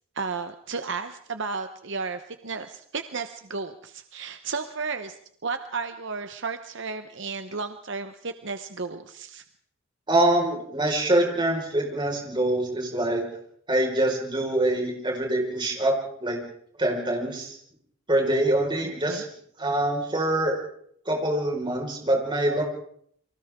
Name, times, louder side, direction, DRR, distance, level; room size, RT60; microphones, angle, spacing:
voice 1, 0.1-9.4 18.8-19.2, right 4 dB, 60° right, 8 dB, 1.0 m, -33 dB
voice 2, 10.1-13.2 13.7-15.9 16.2-16.4 16.8-17.5 18.1-19.2 19.6-20.5 21.1-22.6, right 1 dB, 20° right, 0 dB, 4.9 m, -24 dB
29.5 x 24.0 x 3.7 m, 0.64 s
head